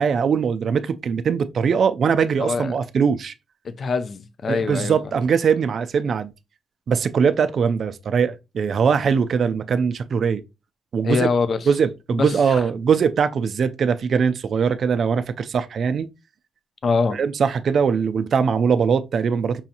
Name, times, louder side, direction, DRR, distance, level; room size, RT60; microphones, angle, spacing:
voice 1, 0.0-3.3 4.5-6.3 6.9-10.4 10.9-11.3 11.7-16.1 17.1-19.6, right 6 dB, 45° right, 0.3 m, -21 dB
voice 2, 2.4-2.7 3.6-5.0 11.0-11.7 12.2-12.6 16.8-17.2, left 4 dB, 35° left, 0.4 m, -24 dB
5.4 x 2.8 x 2.4 m
cardioid pair, 165°, 0 cm